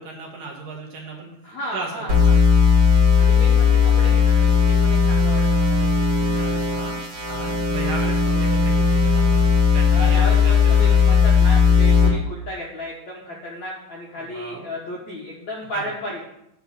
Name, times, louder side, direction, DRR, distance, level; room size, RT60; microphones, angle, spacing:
voice 1, 0.0-1.3 1.7-2.4 6.3-9.4 9.7-11.0 14.2-14.7 15.7-15.9, right 3 dB, 60° right, -1 dB, 2.5 m, -36 dB
voice 2, 1.4-2.4 3.2-6.3 8.3-8.5 9.9-16.2, left 1 dB, 80° left, -4 dB, 1.6 m, -34 dB
sound 1, 2.1-12.1, left 5 dB, 35° right, 3.0 m, -17 dB
9.8 x 4.6 x 6.8 m, 0.81 s
omnidirectional pair, 5.3 m